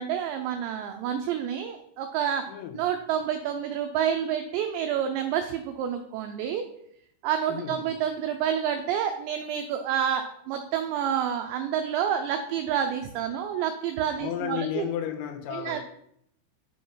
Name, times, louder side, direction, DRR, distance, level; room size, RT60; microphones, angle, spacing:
voice 1, 0.0-2.5 2.7-6.6 7.2-14.8 15.5-15.8, right 9 dB, 85° right, 6 dB, 2.5 m, -28 dB
voice 2, 2.5-2.9 7.5-7.8 14.2-15.8, left 10 dB, 85° left, 6 dB, 3.7 m, -33 dB
10.5 x 5.5 x 5.6 m, 0.73 s
omnidirectional pair, 5.9 m